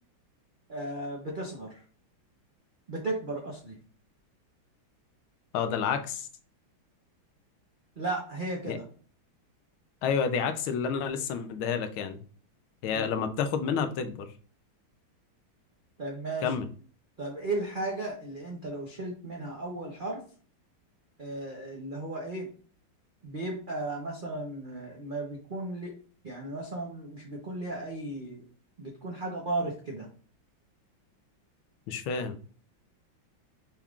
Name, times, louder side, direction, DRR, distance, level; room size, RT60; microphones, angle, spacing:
voice 1, 0.7-1.8 2.9-3.8 8.0-8.8 12.9-13.1 16.0-16.5 17.2-20.2 21.2-22.5 23.2-25.9 26.2-28.4 28.8-30.1, right 2 dB, 80° right, -1 dB, 0.4 m, -35 dB
voice 2, 5.5-6.3 8.7-8.8 10.0-12.2 12.8-14.3 16.4-16.7 31.9-32.4, left 6 dB, 90° left, 8 dB, 1.5 m, -29 dB
5.7 x 2.4 x 3.5 m, 0.42 s
omnidirectional pair, 2.2 m